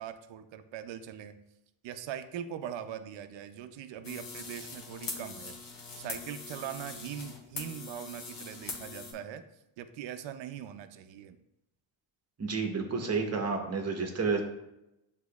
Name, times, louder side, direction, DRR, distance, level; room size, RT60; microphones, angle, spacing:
voice 1, 0.0-1.4 1.8-5.5 6.0-9.5 9.8-11.4, right 9 dB, 65° right, 10 dB, 0.5 m, -41 dB
sound 1, 4.0-9.1, left 4 dB, 45° left, 1.0 m, -42 dB
voice 2, 12.4-14.4, right 4 dB, 30° right, 3 dB, 0.9 m, -30 dB
7.9 x 2.9 x 2.3 m, 0.87 s
cardioid pair, 105°, 48 cm